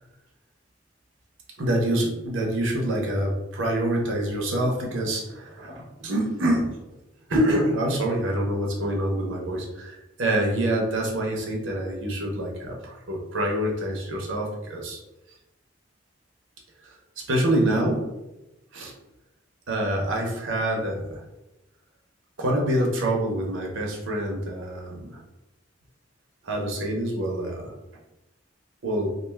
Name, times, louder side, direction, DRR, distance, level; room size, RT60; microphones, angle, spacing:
voice 1, 1.6-6.7 7.3-15.0 16.8-18.1 18.7-18.9 19.7-21.2 22.4-25.2 26.4-27.7 28.8-29.1, right 1 dB, 80° right, 0 dB, 0.7 m, -26 dB
2.5 x 2.3 x 3.2 m, 0.97 s
head